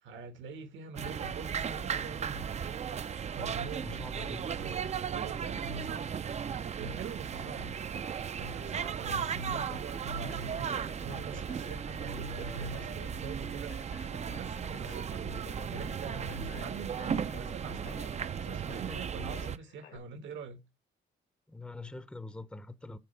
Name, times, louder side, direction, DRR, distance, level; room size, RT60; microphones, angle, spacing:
voice 1, 0.0-2.4 3.3-4.1 4.4-6.1 6.8-7.7 8.4-10.7 11.0-13.7 14.3-20.6, right 4 dB, 75° right, 1.4 m, -44 dB
sound 1, 1.0-19.6, right 7 dB, 35° right, 0.4 m, -36 dB
voice 2, 3.8-4.5 7.4-7.7 8.6-9.4 21.5-23.0, left 2 dB, 5° left, 0.6 m, -45 dB
Conversation, 9.5-20.0, left 8 dB, 75° left, 1.5 m, -52 dB
8.5 x 3.9 x 5.4 m
cardioid pair, 90°, 20 cm